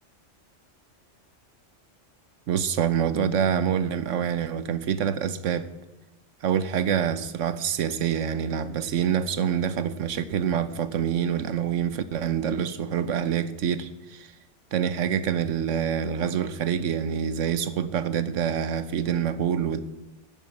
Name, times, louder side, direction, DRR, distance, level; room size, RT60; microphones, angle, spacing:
voice 1, 2.5-5.7 6.4-14.3 14.7-19.8, right 8 dB, 80° right, 1.1 m, -26 dB
12.5 x 8.9 x 7.8 m
omnidirectional pair, 1.3 m